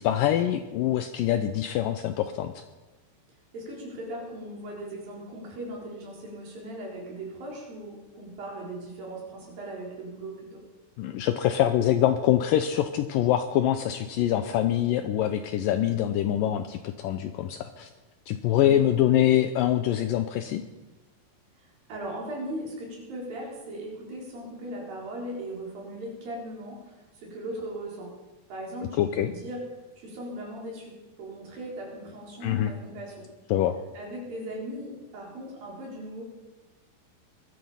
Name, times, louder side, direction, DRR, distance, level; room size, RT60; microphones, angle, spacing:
voice 1, 0.0-2.6 11.0-17.9 18.3-20.6 29.0-29.3 32.4-32.7 33.5-33.8, left 11 dB, 85° left, 9 dB, 1.9 m, -24 dB
voice 2, 3.5-10.6 18.6-18.9 21.6-28.2 28.5-29.6 30.0-33.3 33.9-36.2, right 1 dB, 60° right, -2 dB, 5.7 m, -38 dB
20.5 x 12.5 x 5.6 m, 1.2 s
omnidirectional pair, 4.8 m